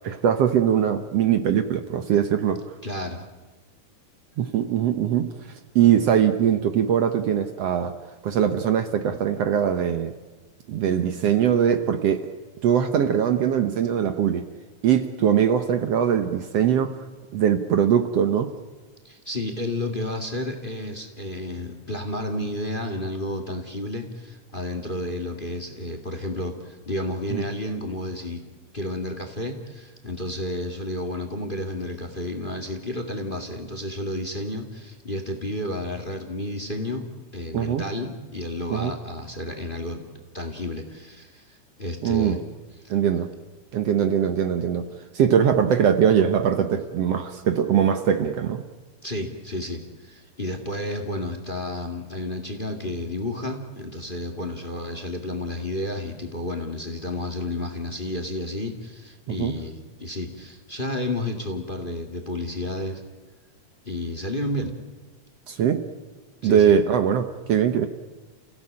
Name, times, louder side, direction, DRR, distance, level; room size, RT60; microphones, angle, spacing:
voice 1, 0.0-2.6 4.4-5.3 5.8-8.0 8.2-10.1 10.7-12.3 12.6-14.5 14.8-17.0 17.3-18.5 27.3-27.4 37.5-37.8 38.7-38.9 42.0-42.4 42.9-43.3 43.7-48.6 59.3-59.5 65.5-65.9 66.4-67.9, right 8 dB, 65° right, 8 dB, 1.9 m, -21 dB
voice 2, 2.8-3.2 19.0-28.4 28.7-37.1 37.3-40.0 40.3-42.4 49.0-63.0 63.8-64.7 66.4-66.7, left 1 dB, 20° left, 6 dB, 1.9 m, -31 dB
30.0 x 16.5 x 8.8 m, 1.3 s
omnidirectional pair, 3.5 m